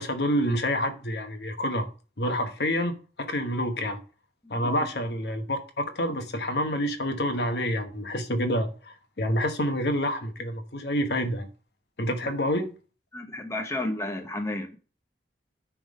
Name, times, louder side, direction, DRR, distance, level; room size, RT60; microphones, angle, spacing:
voice 1, 0.0-1.9 2.2-4.0 4.5-11.5 12.0-12.7, equal, 65° left, 1.1 m, -28 dB
voice 2, 4.4-4.7 12.2-12.3 13.1-14.8, left 1 dB, 15° left, 0.8 m, -32 dB
9.8 x 3.7 x 5.3 m
head